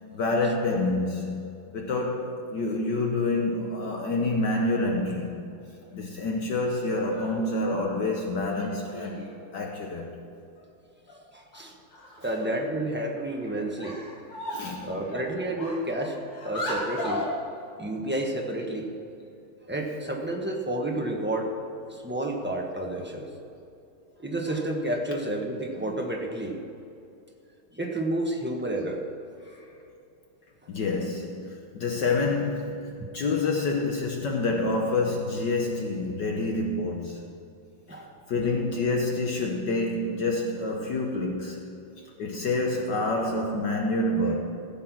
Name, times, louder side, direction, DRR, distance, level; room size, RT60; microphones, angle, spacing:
voice 1, 0.1-1.5 1.7-5.3 5.9-10.2 14.5-14.9 29.5-29.6 30.7-37.2 37.9-38.0 38.3-41.8 42.2-44.3, left 2 dB, 60° left, 1 dB, 1.5 m, -27 dB
sound 1, 7.1-7.4 8.5-9.4 10.6-10.7 11.1-11.2 11.5-11.6 11.9-12.6 13.2-13.3 13.8-14.8 15.1-17.4, left 1 dB, 85° left, 3.0 m, -36 dB
voice 2, 11.3-11.7 12.2-14.0 14.8-17.2 17.8-18.9 19.7-21.6 21.9-23.3 24.2-26.6 27.7-29.1 37.9-38.1, right 1 dB, 10° right, 0 dB, 0.7 m, -30 dB
15.5 x 7.6 x 6.1 m, 2.6 s
omnidirectional pair, 2.4 m